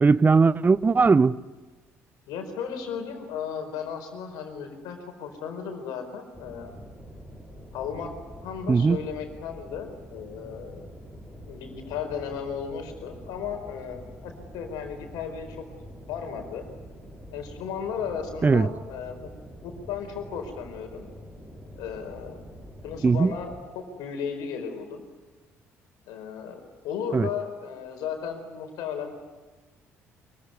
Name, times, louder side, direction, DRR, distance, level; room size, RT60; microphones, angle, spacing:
voice 1, 0.0-1.4 8.7-9.0 18.4-18.7 23.0-23.3 27.1-27.3, right 4 dB, 25° right, 0.7 m, -19 dB
voice 2, 2.3-6.9 7.7-8.1 8.4-10.9 11.4-15.6 16.1-16.7 17.3-19.3 19.6-21.1 21.8-22.4 22.8-25.0 26.1-29.1, left 7 dB, 60° left, 4.6 m, -35 dB
sound 1, 6.3-23.6, equal, 10° right, 6.7 m, -45 dB
24.0 x 23.0 x 9.6 m
figure-of-eight pair, 50°, 8 cm